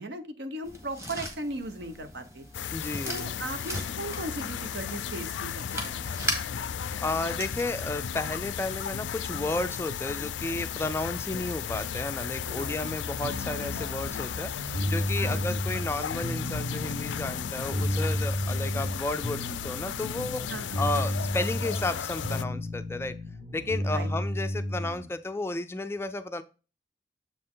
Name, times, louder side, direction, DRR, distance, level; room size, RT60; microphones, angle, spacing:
voice 1, 0.0-2.5 3.1-6.2 12.4-12.8 15.2-15.4 20.5-20.9 23.9-24.1, right 2 dB, 70° right, 8 dB, 1.0 m, -37 dB
sound 1, 0.6-7.8, equal, 15° right, 1.5 m, -39 dB
sound 2, 2.5-22.4, left 8 dB, 90° left, 0.4 m, -35 dB
voice 2, 2.7-3.3 7.0-20.5 20.8-23.2 23.5-26.4, left 2 dB, 15° left, 10 dB, 0.3 m, -33 dB
sound 3, 13.2-25.1, equal, 45° right, 1.2 m, -33 dB
7.4 x 4.3 x 3.8 m, 0.33 s
head